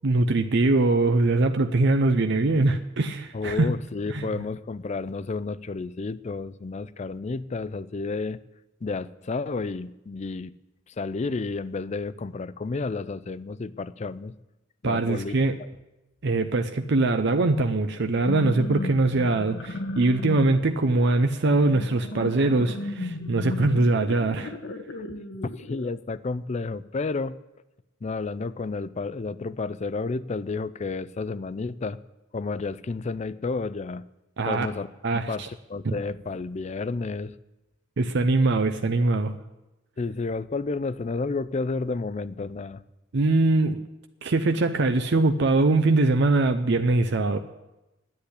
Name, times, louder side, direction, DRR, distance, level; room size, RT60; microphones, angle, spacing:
voice 1, 0.0-3.7 4.1-4.3 14.8-15.5 16.2-24.5 34.4-34.7 35.0-35.5 35.9-36.0 38.0-39.3 43.1-43.8 44.2-47.4, right 2 dB, 60° right, 7 dB, 0.6 m, -22 dB
voice 2, 3.3-8.4 8.8-10.5 10.9-14.3 14.8-15.3 25.0-25.1 25.6-27.4 28.0-32.0 32.3-34.0 34.5-34.9 35.1-37.3 40.0-42.8, left 3 dB, 35° left, 16 dB, 0.4 m, -31 dB
sound 1, 18.1-25.9, left 1 dB, 65° left, 1.0 m, -35 dB
10.5 x 8.5 x 9.9 m, 1.0 s
head